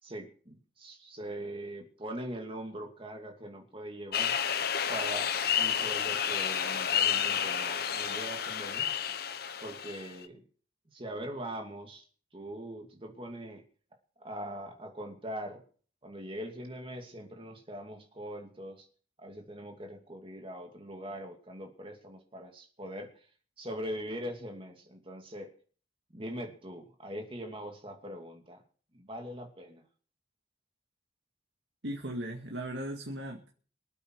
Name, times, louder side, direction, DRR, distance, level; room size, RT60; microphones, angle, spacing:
voice 1, 0.0-4.5 4.9-5.3 5.6-9.2 9.6-10.5 10.9-12.0 12.3-13.6 14.2-15.6 16.0-18.9 19.2-23.3 23.6-25.5 26.1-28.6 28.9-29.9, right 1 dB, 30° right, 3 dB, 2.6 m, -42 dB
sound 1, 4.1-10.3, left 8 dB, 55° left, 1.0 m, -30 dB
voice 2, 31.8-33.5, right 1 dB, 75° right, 1 dB, 2.2 m, -37 dB
24.5 x 9.0 x 4.8 m, 0.44 s
head